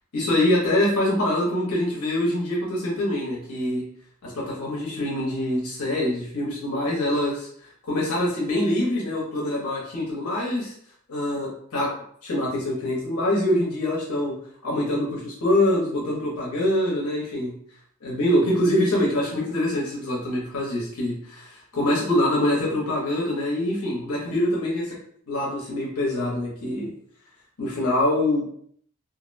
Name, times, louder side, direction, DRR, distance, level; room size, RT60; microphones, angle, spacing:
voice 1, 0.1-3.8 4.2-7.5 7.9-10.7 11.1-11.9 12.2-14.3 14.6-17.5 18.0-25.0 25.3-26.9 27.6-28.5, left 1 dB, 80° left, -4 dB, 0.8 m, -24 dB
2.5 x 2.0 x 2.5 m, 0.63 s
head